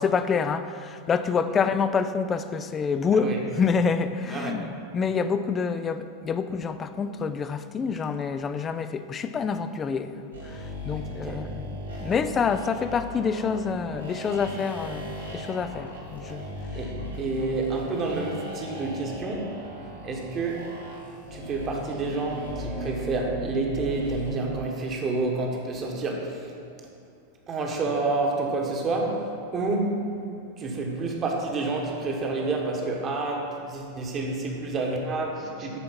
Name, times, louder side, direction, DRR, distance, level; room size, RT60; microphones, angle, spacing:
voice 1, 0.0-16.5, left 5 dB, 20° left, 11 dB, 0.4 m, -27 dB
voice 2, 4.3-4.6 10.9-11.5 16.7-19.6 20.0-20.7 21.3-26.5 27.5-30.1 30.6-35.8, right 3 dB, 30° right, 0 dB, 1.2 m, -29 dB
sound 1, 10.3-24.4, equal, 75° right, 1.7 m, -38 dB
9.8 x 4.4 x 5.3 m, 2.5 s
figure-of-eight pair, 90°, 0 cm